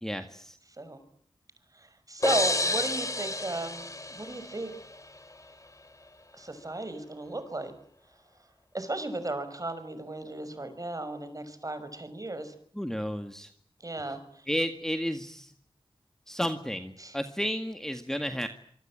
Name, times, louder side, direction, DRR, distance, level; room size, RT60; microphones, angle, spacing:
voice 1, 0.0-0.5 12.8-13.5 14.5-15.5 16.3-18.5, equal, 5° left, 7 dB, 2.0 m, -32 dB
voice 2, 1.7-4.7 6.3-7.7 8.7-12.5 13.8-14.5 17.0-17.2, right 2 dB, 35° right, 11 dB, 5.8 m, -35 dB
sound 1, 2.2-5.0, left 2 dB, 35° left, 3.4 m, -30 dB
26.5 x 23.0 x 8.9 m, 0.64 s
wide cardioid pair, 60°, 10 cm